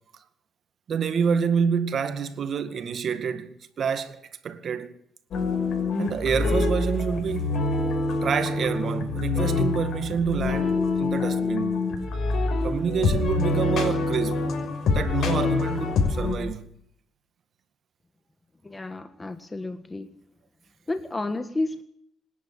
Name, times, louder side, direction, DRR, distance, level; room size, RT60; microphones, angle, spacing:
voice 1, 0.9-4.9 6.0-7.6 8.2-11.8 12.6-14.5 14.9-16.6, right 6 dB, 55° right, 2.0 m, -27 dB
Lo-fi Music Guitar (Short version), 5.3-16.3, left 3 dB, 65° left, 5.9 m, -25 dB
voice 2, 18.6-20.1 20.9-21.8, left 2 dB, 20° left, 1.5 m, -31 dB
25.5 x 10.5 x 10.0 m
cardioid pair, 90°, 0 cm